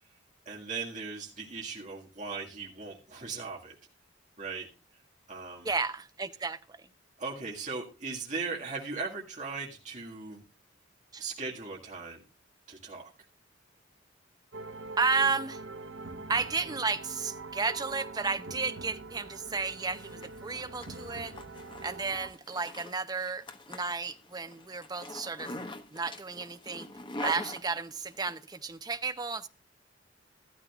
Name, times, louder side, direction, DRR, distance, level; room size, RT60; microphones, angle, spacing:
voice 1, 0.5-3.8 4.4-4.7 5.3-5.7 7.2-10.4 11.2-12.2 12.7-13.1, right 4 dB, 40° right, 1.9 m, -38 dB
voice 2, 5.6-6.9 11.1-11.2 15.0-15.6 16.3-21.4 21.8-25.5 25.9-26.9 27.2-29.5, right 4 dB, 20° right, 0.6 m, -32 dB
sound 1, 14.5-22.3, right 3 dB, 85° right, 1.0 m, -44 dB
Zipper (clothing), 19.7-28.4, left 2 dB, 25° left, 1.1 m, -44 dB
13.5 x 12.5 x 2.4 m
head